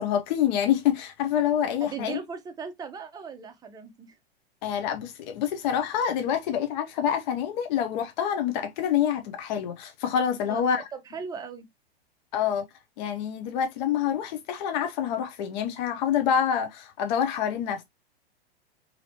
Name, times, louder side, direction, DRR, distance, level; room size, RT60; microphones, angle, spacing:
voice 1, 0.0-2.2 4.6-10.8 12.3-12.7 13.0-17.8, left 9 dB, 50° left, 0.5 m, -27 dB
voice 2, 1.8-4.2 10.5-11.7, right 5 dB, 15° right, 0.5 m, -38 dB
2.9 x 2.7 x 2.7 m
figure-of-eight pair, 100°, 30 cm